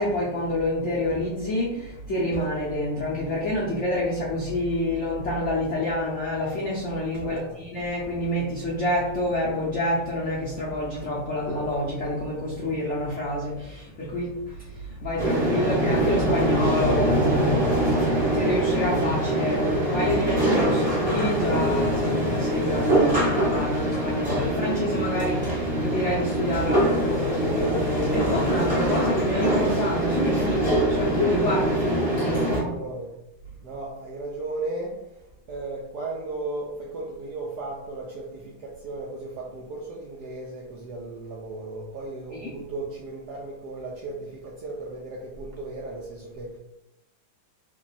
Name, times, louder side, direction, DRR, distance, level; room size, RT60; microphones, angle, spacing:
voice 1, 0.0-32.7 42.3-42.6, left 1 dB, 80° left, -5 dB, 0.6 m, -28 dB
voice 2, 7.2-7.6 31.8-32.0 32.3-33.1 33.6-46.6, right 2 dB, 75° right, -2 dB, 0.9 m, -36 dB
sound 1, 15.2-32.6, right 1 dB, 5° right, 0.7 m, -23 dB
3.5 x 2.2 x 3.9 m, 0.87 s
omnidirectional pair, 2.3 m